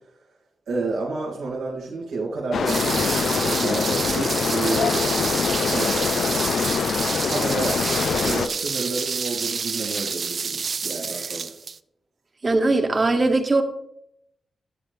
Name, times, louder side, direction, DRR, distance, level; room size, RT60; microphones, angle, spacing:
voice 1, 0.7-5.3 5.6-6.0 7.3-7.8 8.1-11.5, right 3 dB, 85° right, 2.0 m, -30 dB
sound 1, 2.5-8.5, left 6 dB, 75° left, 0.4 m, -24 dB
sound 2, 2.7-11.8, right 5 dB, 60° right, 0.4 m, -28 dB
voice 2, 12.4-13.6, right 2 dB, 45° right, 1.5 m, -20 dB
11.0 x 7.8 x 3.4 m
supercardioid pair, 45°, 0 cm